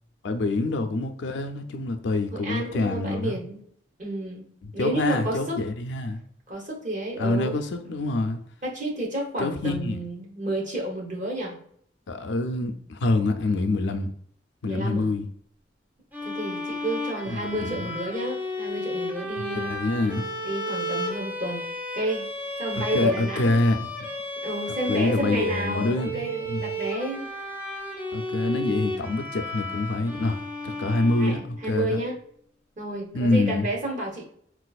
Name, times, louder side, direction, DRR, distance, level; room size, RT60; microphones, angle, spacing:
voice 1, 0.2-3.4 4.6-6.2 7.2-8.4 9.4-10.0 12.1-14.1 14.6-15.3 17.3-17.9 19.5-20.3 22.9-23.9 24.9-26.6 28.1-32.0 33.1-33.7, left 2 dB, 70° left, 0.4 m, -26 dB
voice 2, 2.3-3.6 4.0-4.4 4.7-5.6 6.5-7.6 8.6-11.6 14.7-15.1 16.2-19.7 20.4-21.6 21.9-22.2 22.6-23.6 24.4-27.3 31.2-32.2 32.8-34.2, right 1 dB, 45° right, 1.0 m, -31 dB
sound 1, 16.1-31.8, left 1 dB, 10° right, 0.5 m, -33 dB
4.0 x 2.4 x 2.3 m
head